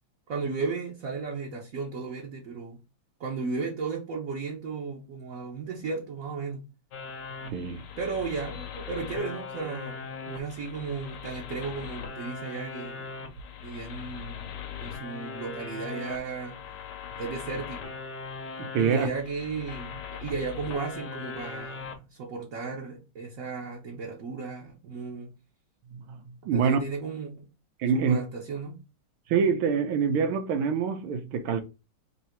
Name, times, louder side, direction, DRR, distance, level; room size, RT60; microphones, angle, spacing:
voice 1, 0.3-2.8 3.2-6.6 8.0-13.3 13.6-14.5 14.8-16.6 17.2-17.9 18.8-25.3 26.5-27.5 27.9-28.8, right 4 dB, 50° right, 1.1 m, -35 dB
sound 1, 6.9-21.9, left 5 dB, 65° left, 1.3 m, -40 dB
voice 2, 7.4-7.8 18.6-19.1 25.9-26.2 26.4-26.8 27.8-28.2 29.3-31.6, right 6 dB, 80° right, 1.6 m, -25 dB
3.9 x 2.8 x 4.3 m
omnidirectional pair, 2.3 m